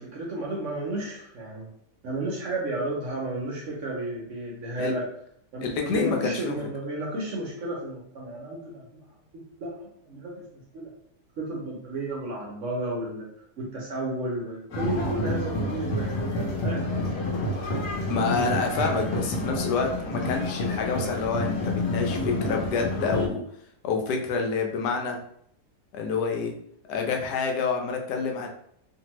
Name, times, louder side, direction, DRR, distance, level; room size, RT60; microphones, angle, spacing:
voice 1, 0.0-1.7 2.0-5.1 5.5-9.0 9.3-10.9 11.4-13.3 13.6-16.2 16.6-17.0 18.2-18.5, right 2 dB, 60° right, -3 dB, 0.9 m, -33 dB
voice 2, 5.6-6.6 18.1-23.4 23.8-25.2 25.9-26.5 26.9-28.5, left 4 dB, 80° left, 2 dB, 1.1 m, -27 dB
sound 1, 14.7-23.3, left 1 dB, 60° left, 1.0 m, -29 dB
2.8 x 2.6 x 2.9 m, 0.68 s
omnidirectional pair, 1.8 m